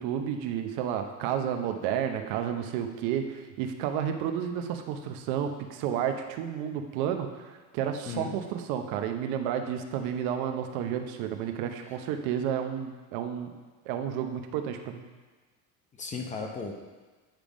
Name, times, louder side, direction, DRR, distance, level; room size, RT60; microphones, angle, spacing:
voice 1, 0.0-13.5 13.9-15.0, right 9 dB, 75° right, 6 dB, 0.8 m, -31 dB
voice 2, 8.1-8.4 11.8-12.0 15.9-16.7, left 4 dB, 20° left, 2 dB, 0.6 m, -36 dB
9.0 x 3.4 x 5.1 m, 1.3 s
cardioid pair, 145°, 37 cm